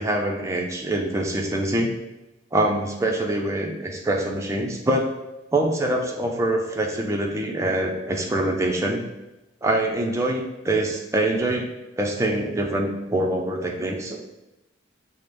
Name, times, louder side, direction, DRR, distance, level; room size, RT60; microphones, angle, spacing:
voice 1, 0.0-1.9 2.5-5.1 5.5-9.0 9.6-11.7 12.0-14.2, right 1 dB, 15° right, 0 dB, 0.4 m, -24 dB
5.6 x 2.0 x 3.3 m, 1.0 s
head